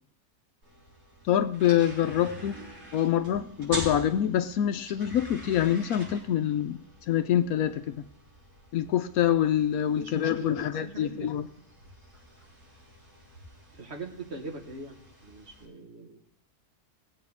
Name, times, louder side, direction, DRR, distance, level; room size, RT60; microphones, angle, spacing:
sound 1, 0.6-15.6, right 1 dB, 80° right, 4.7 m, -45 dB
voice 1, 1.3-2.6 2.9-8.0 8.7-11.5, left 10 dB, 70° left, 11 dB, 1.0 m, -26 dB
voice 2, 9.9-11.3 13.7-16.3, right 2 dB, 45° right, 3 dB, 1.5 m, -42 dB
20.0 x 8.0 x 3.6 m, 0.70 s
omnidirectional pair, 1.6 m